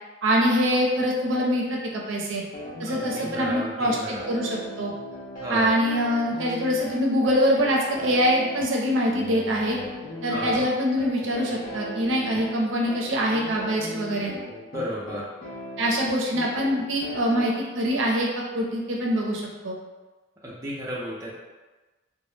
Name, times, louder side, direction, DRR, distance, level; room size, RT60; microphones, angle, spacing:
voice 1, 0.2-2.4 2.8-4.9 5.5-9.8 10.2-14.3 15.8-18.3 18.5-19.8, equal, 75° right, -2 dB, 0.5 m, -24 dB
sound 1, 2.5-17.5, equal, 40° left, 0.5 m, -38 dB
voice 2, 2.9-4.2 5.4-5.7 10.3-10.6 14.7-15.2 20.4-21.4, equal, 15° right, -6 dB, 0.4 m, -33 dB
2.1 x 2.0 x 3.1 m, 1.2 s
head